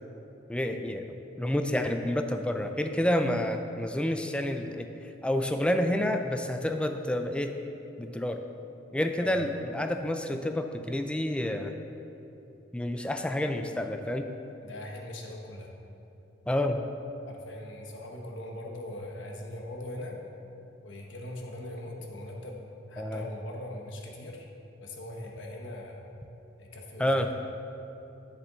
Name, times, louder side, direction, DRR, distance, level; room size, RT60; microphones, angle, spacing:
voice 1, 0.5-4.9 5.2-7.6 8.0-8.4 8.9-11.7 12.7-14.3 16.5-16.8 23.0-23.3 27.0-27.3, left 1 dB, 5° left, 6 dB, 0.3 m, -29 dB
voice 2, 14.6-15.7 17.3-20.2 20.8-24.5 24.8-26.0 26.6-27.3, left 1 dB, 80° left, 0 dB, 1.2 m, -41 dB
10.0 x 7.0 x 3.9 m, 2.9 s
head